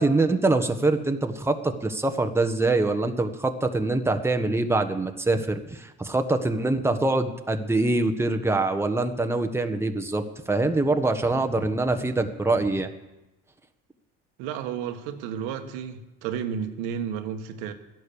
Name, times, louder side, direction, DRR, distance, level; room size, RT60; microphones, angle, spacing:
voice 1, 0.0-12.9, right 2 dB, 10° right, 6 dB, 1.3 m, -24 dB
voice 2, 14.4-17.7, right 8 dB, 85° right, 6 dB, 1.5 m, -32 dB
13.5 x 10.5 x 7.0 m, 0.98 s
supercardioid pair, 90°, 32 cm